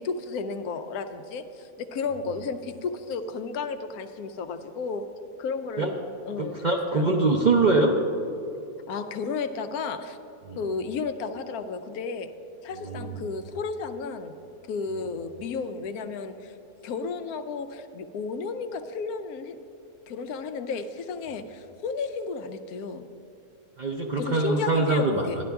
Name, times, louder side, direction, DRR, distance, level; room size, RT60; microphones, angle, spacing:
voice 1, 0.0-5.0 5.4-6.6 6.9-7.1 8.9-10.2 10.6-12.3 12.6-14.3 14.7-16.5 16.8-19.6 20.1-23.1 24.2-25.4, left 4 dB, 90° left, 10 dB, 1.1 m, -33 dB
voice 2, 6.4-7.9 10.5-10.6 12.8-13.1 23.8-25.3, right 3 dB, 50° right, 1 dB, 0.5 m, -23 dB
12.0 x 11.0 x 3.5 m, 2.8 s
omnidirectional pair, 1.5 m